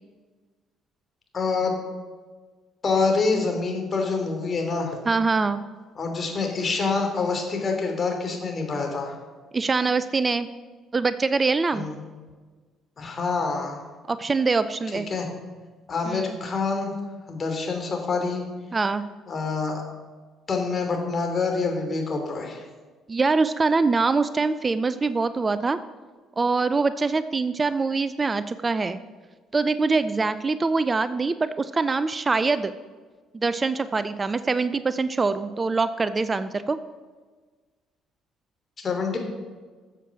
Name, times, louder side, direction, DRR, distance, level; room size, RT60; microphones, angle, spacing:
voice 1, 1.3-1.7 2.8-5.0 6.0-9.2 11.7-11.9 13.0-13.8 15.1-15.3 15.9-16.9 17.3-18.4 19.3-19.8 20.5-22.6 38.8-39.2, left 4 dB, 40° left, 3 dB, 3.1 m, -26 dB
voice 2, 5.1-5.6 9.5-10.5 10.9-11.9 14.1-15.1 16.1-16.4 18.7-19.0 23.1-25.8 26.4-29.0 29.5-32.7 33.3-36.8, right 4 dB, 30° right, 13 dB, 0.5 m, -24 dB
14.0 x 7.2 x 6.0 m, 1.4 s
hypercardioid pair, 50°, 0 cm